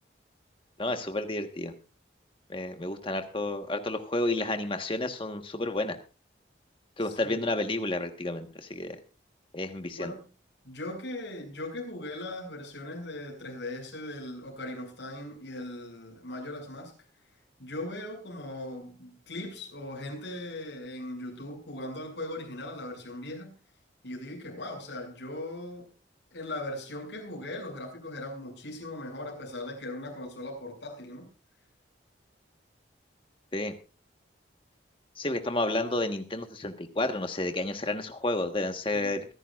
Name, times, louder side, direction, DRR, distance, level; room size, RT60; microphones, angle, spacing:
voice 1, 0.8-1.7 2.5-6.0 7.0-9.0 9.5-10.1 33.5-33.7 35.2-39.2, left 2 dB, 25° left, 1.3 m, -31 dB
voice 2, 7.0-7.4 9.9-10.2 10.6-16.9 17.6-23.5 24.0-25.9 26.3-31.3 38.9-39.3, left 1 dB, 70° left, 6.6 m, -39 dB
24.5 x 11.0 x 2.5 m
head